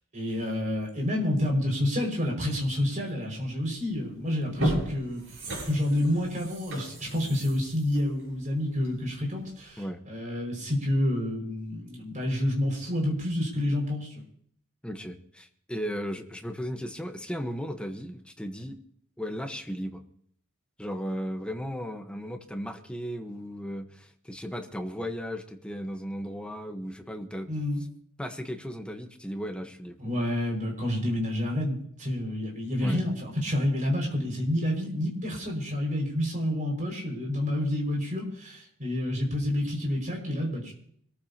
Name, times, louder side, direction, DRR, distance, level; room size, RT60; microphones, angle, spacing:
voice 1, 0.1-5.2 5.7-14.1 27.5-27.8 30.0-40.7, left 1 dB, 35° right, 0 dB, 5.5 m, -29 dB
sound 1, 3.8-4.0 4.4-9.1 9.5-9.6, right 1 dB, 60° right, 7.5 m, -34 dB
voice 2, 14.8-18.8 19.2-20.0 20.8-27.5 28.2-30.0 32.8-33.0, equal, 5° left, 6 dB, 1.1 m, -35 dB
25.5 x 14.0 x 2.9 m, 0.65 s
head